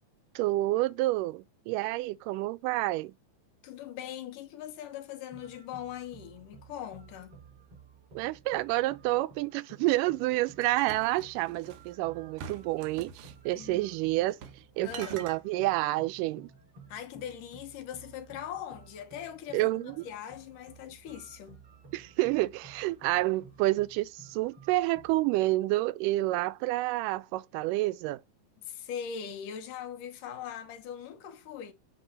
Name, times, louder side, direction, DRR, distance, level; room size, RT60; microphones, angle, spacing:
voice 1, 0.4-3.1 8.2-14.4 14.8-16.5 19.5-20.1 21.9-28.2, right 18 dB, 90° right, 2.2 m, -29 dB
voice 2, 3.6-7.4 13.5-13.9 14.8-15.3 16.9-21.6 28.6-31.7, left 9 dB, 80° left, 2.8 m, -41 dB
sound 1, 5.3-25.2, right 4 dB, 45° right, 4.8 m, -55 dB
sound 2, 10.6-11.9 12.4-13.4 14.3-14.6 14.9-15.4, right 7 dB, 65° right, 1.4 m, -45 dB
9.1 x 3.6 x 4.1 m
omnidirectional pair, 3.7 m